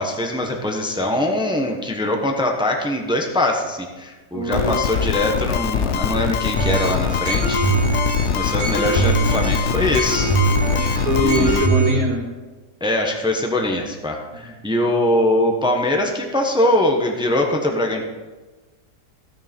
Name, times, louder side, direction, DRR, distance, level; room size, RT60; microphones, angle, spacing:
voice 1, 0.0-7.6 8.3-10.3 11.2-11.6 12.8-18.0, left 1 dB, 5° right, 2 dB, 0.7 m, -22 dB
voice 2, 4.3-4.7 10.7-12.2 14.4-14.5, right 1 dB, 55° right, -2 dB, 2.7 m, -22 dB
sound 1, 4.5-11.7, left 7 dB, 75° left, 0.6 m, -23 dB
sound 2, 6.6-11.9, right 3 dB, 85° right, 4.2 m, -22 dB
16.0 x 6.7 x 4.4 m, 1.2 s
omnidirectional pair, 1.8 m